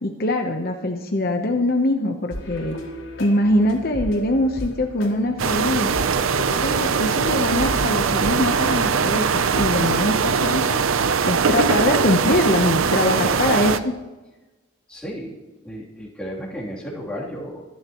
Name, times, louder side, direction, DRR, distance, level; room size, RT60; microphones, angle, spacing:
voice 1, 0.0-2.8 3.2-6.0 6.4-10.8 11.2-13.9, left 1 dB, 50° left, 3 dB, 1.0 m, -22 dB
sound 1, 2.3-10.1, equal, 65° left, 3.3 m, -35 dB
sound 2, 5.4-13.8, right 5 dB, 85° right, 0.6 m, -21 dB
voice 2, 14.9-15.3 15.6-17.6, equal, 5° left, -6 dB, 3.1 m, -33 dB
25.0 x 10.5 x 3.1 m, 1.1 s
head